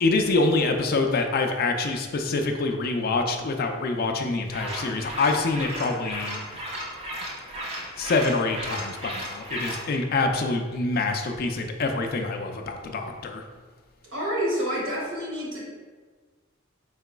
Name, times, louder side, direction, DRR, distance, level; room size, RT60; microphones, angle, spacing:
voice 1, 0.0-6.4 8.0-13.4, left 3 dB, 45° left, 4 dB, 0.4 m, -25 dB
sound 1, 4.5-9.9, right 1 dB, 30° right, 0.8 m, -35 dB
voice 2, 14.1-15.6, equal, 75° right, -4 dB, 1.4 m, -28 dB
4.7 x 3.9 x 2.2 m, 1.5 s
head